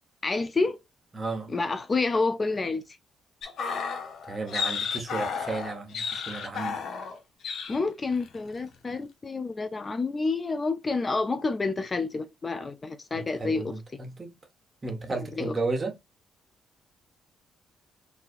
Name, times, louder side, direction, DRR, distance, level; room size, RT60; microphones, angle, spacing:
voice 1, 0.2-0.8 1.5-3.0 7.7-13.6 15.4-15.5, left 3 dB, 30° left, 0.4 m, -28 dB
voice 2, 1.1-1.5 4.3-6.8 13.1-14.3 14.8-16.0, right 3 dB, 30° right, 1.2 m, -33 dB
sound 1, 3.4-7.2 7.4-7.8 8.1-8.3, left 6 dB, 65° left, 0.8 m, -32 dB
3.9 x 2.7 x 2.5 m
cardioid pair, 90°, 0 cm